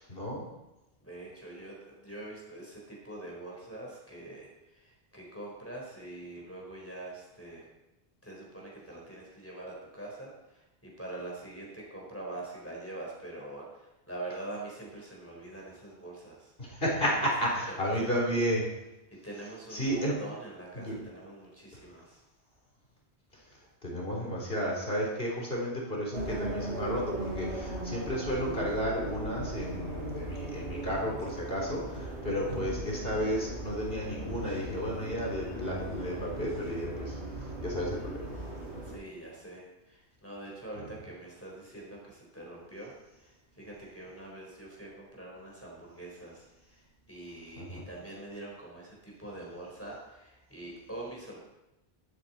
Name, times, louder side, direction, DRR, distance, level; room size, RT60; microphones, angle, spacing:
voice 1, 0.1-0.5 16.6-18.7 19.7-20.1 20.7-21.0 23.8-37.2 37.6-38.3 40.8-40.9 47.6-47.8, equal, 60° left, -3 dB, 3.7 m, -32 dB
voice 2, 1.0-7.7 8.2-16.5 17.2-17.3 17.8-18.4 19.2-22.2 38.8-42.9 43.2-46.8 47.1-51.4, right 2 dB, 10° left, -4 dB, 4.0 m, -44 dB
sound 1, 26.1-39.0, right 1 dB, 85° right, 6.2 m, -38 dB
13.5 x 12.5 x 4.2 m, 0.95 s
omnidirectional pair, 1.1 m